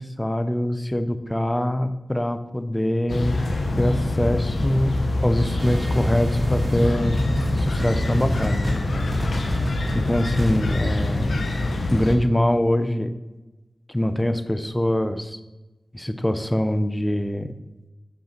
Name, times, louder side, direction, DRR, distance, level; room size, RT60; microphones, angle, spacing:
voice 1, 0.0-3.5 3.8-4.9 5.2-7.2 7.6-9.1 9.9-11.4 11.9-13.1 13.9-15.4 15.9-17.5, left 1 dB, 15° left, 10 dB, 0.6 m, -24 dB
sound 1, 3.1-12.1, left 2 dB, 80° left, 0.9 m, -24 dB
sound 2, 5.6-11.7, equal, 40° right, 2.4 m, -36 dB
8.0 x 5.3 x 4.4 m, 1.1 s
cardioid pair, 55°, 0 cm